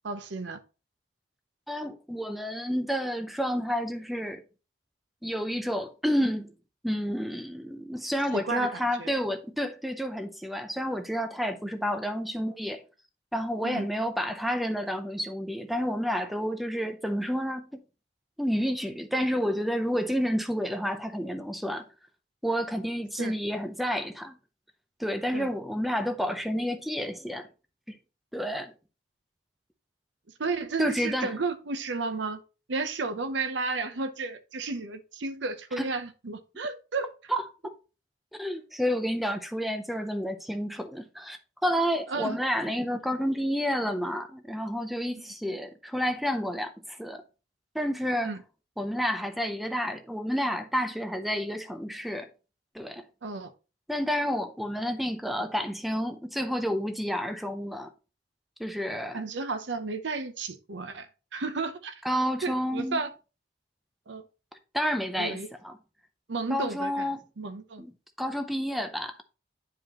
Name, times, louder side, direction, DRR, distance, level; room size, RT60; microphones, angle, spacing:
voice 1, 0.0-0.6 8.3-9.1 13.6-13.9 23.2-23.4 25.3-25.5 30.4-32.4 32.7-37.3 42.1-42.4 45.2-45.3 48.2-48.4 53.2-53.5 59.1-61.9 62.4-63.1 64.1-64.2 65.2-65.5 66.3-67.8, right 3 dB, 85° right, 0.7 m, -33 dB
voice 2, 1.7-4.4 5.2-6.5 6.8-12.8 13.3-17.8 18.4-21.9 22.4-24.4 25.0-27.5 27.9-28.0 28.3-28.7 30.8-31.3 35.8-35.9 37.3-37.8 38.3-47.2 47.7-48.3 48.8-52.3 52.7-53.1 53.9-57.9 58.6-59.2 62.0-63.0 64.7-65.7 66.5-67.2 67.8-67.9 68.2-69.2, equal, ahead, 0.5 m, -30 dB
9.1 x 4.9 x 2.9 m
head